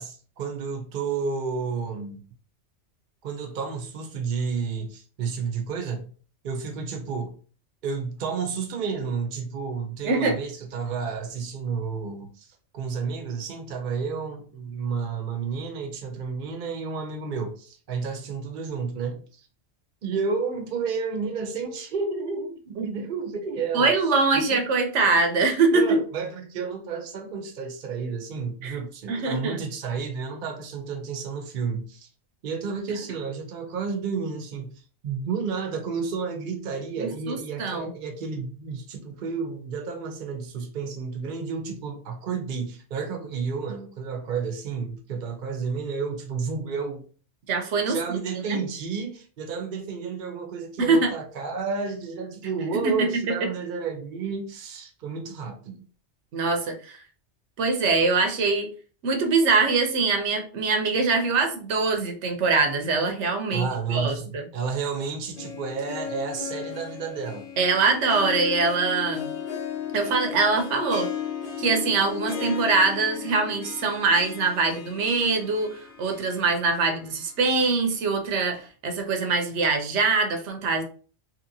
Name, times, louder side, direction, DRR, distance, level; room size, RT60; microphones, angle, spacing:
voice 1, 0.0-2.2 3.2-6.1 6.4-7.3 7.8-19.5 20.0-23.9 24.5-24.7 25.7-32.1 32.4-34.7 35.0-47.0 47.9-55.8 63.5-67.5, right 5 dB, 55° right, 0.7 m, -31 dB
voice 2, 10.0-10.4 22.8-22.9 23.7-25.8 28.6-28.8 29.1-29.6 37.0-37.9 47.5-48.2 48.5-48.6 50.8-51.1 52.8-53.1 56.3-57.0 57.6-58.7 59.0-64.5 67.6-69.3 69.9-71.1 71.6-80.8, right 4 dB, 85° right, 1.0 m, -23 dB
Harp, 65.1-77.2 77.6-77.7 78.5-78.6, left 8 dB, 40° left, 0.6 m, -35 dB
2.9 x 2.8 x 2.6 m
omnidirectional pair, 1.2 m